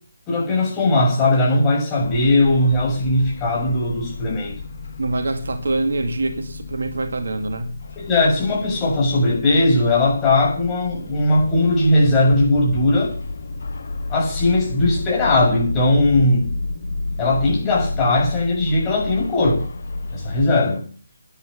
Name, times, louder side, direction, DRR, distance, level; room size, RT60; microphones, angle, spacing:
voice 1, 0.3-4.6 8.0-13.1 14.1-16.5 17.2-19.7 20.1-20.9, left 2 dB, 15° left, 6.9 m, -18 dB
sound 1, 2.0-20.5, left 2 dB, 55° left, 2.7 m, -31 dB
voice 2, 5.0-7.8, right 2 dB, 60° right, 2.1 m, -25 dB
12.0 x 10.5 x 6.9 m
figure-of-eight pair, 145°, 0 cm